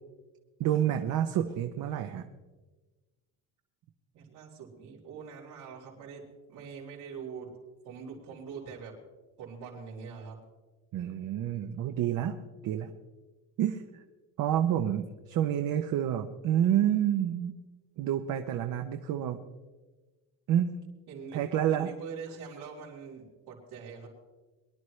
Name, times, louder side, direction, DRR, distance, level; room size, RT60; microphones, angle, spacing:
voice 1, 0.6-2.2 10.9-12.4 12.6-12.9 13.6-13.8 14.4-17.5 18.0-19.4 20.5-20.7 21.3-21.9, right 10 dB, 55° right, 6 dB, 0.8 m, -28 dB
voice 2, 4.1-6.2 6.5-7.5 7.8-9.0 9.4-10.4 21.1-24.1, right 6 dB, 90° right, -9 dB, 4.2 m, -43 dB
23.5 x 11.5 x 3.2 m, 1.3 s
cardioid pair, 175°, 37 cm